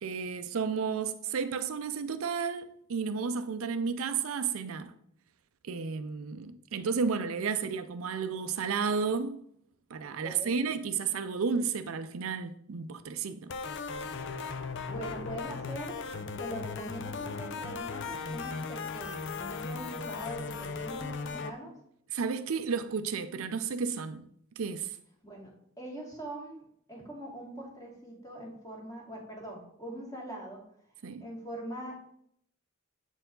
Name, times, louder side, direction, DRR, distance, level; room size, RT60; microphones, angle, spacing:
voice 1, 0.0-4.9 5.6-9.4 9.9-13.5 22.1-24.2 24.6-25.0 31.0-31.3, right 5 dB, 75° right, 0.5 m, -32 dB
voice 2, 10.2-10.7 14.9-16.0 16.4-21.7 25.2-30.6 31.2-31.9, right 1 dB, 15° left, 1.9 m, -42 dB
sound 1, 13.5-21.5, left 4 dB, 60° left, 0.5 m, -37 dB
7.9 x 4.6 x 3.7 m
head